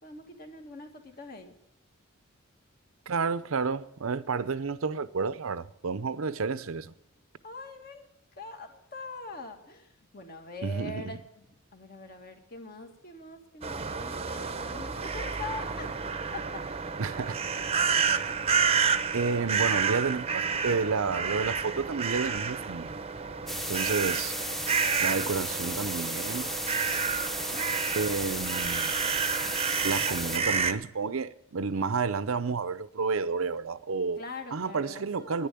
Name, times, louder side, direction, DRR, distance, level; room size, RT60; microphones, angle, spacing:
voice 1, 0.0-1.5 7.4-8.1 8.4-11.5 11.7-16.7 27.2-27.8 34.2-35.5, left 3 dB, 45° left, 2.1 m, -43 dB
voice 2, 3.1-6.9 10.6-11.2 17.0-17.7 19.1-23.0 23.7-24.3 25.0-26.5 28.0-28.9 29.8-34.2 34.5-35.5, right 4 dB, 75° right, 0.6 m, -30 dB
sound 1, 13.6-30.7, right 6 dB, 30° right, 0.7 m, -30 dB
sound 2, 23.5-30.4, equal, ahead, 0.8 m, -34 dB
10.5 x 10.0 x 10.0 m
head